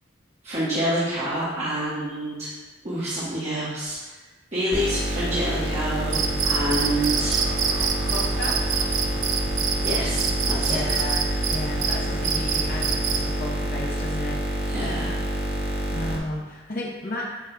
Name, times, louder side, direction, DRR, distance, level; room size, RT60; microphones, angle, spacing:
voice 1, 0.4-2.5 2.8-4.1 4.5-7.4 9.8-10.8 14.6-15.2, right 1 dB, 35° right, -10 dB, 1.3 m, -27 dB
sound 1, 4.7-16.2, right 1 dB, 10° right, 0.9 m, -28 dB
Cricket, 6.1-13.3, right 6 dB, 85° right, 0.6 m, -27 dB
Laughter, 6.9-10.8, right 1 dB, 65° right, 1.4 m, -42 dB
voice 2, 8.1-8.6 10.7-11.2 11.5-14.6 15.9-17.3, left 1 dB, 45° left, -4 dB, 0.8 m, -33 dB
7.9 x 5.4 x 2.3 m, 1.2 s
head